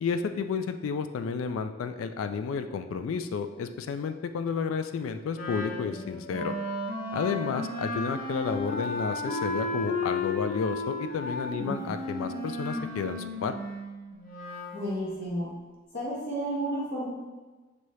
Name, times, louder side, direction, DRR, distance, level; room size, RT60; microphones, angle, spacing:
voice 1, 0.0-6.6 7.1-13.5, left 6 dB, 80° left, 10 dB, 0.3 m, -31 dB
Wind instrument woodwind instrument, 5.3-14.8, left 2 dB, 45° left, 0.7 m, -34 dB
voice 2, 11.6-11.9 14.7-15.5 15.9-17.1, right 1 dB, 65° left, -9 dB, 1.2 m, -32 dB
6.1 x 2.8 x 3.1 m, 1.3 s
head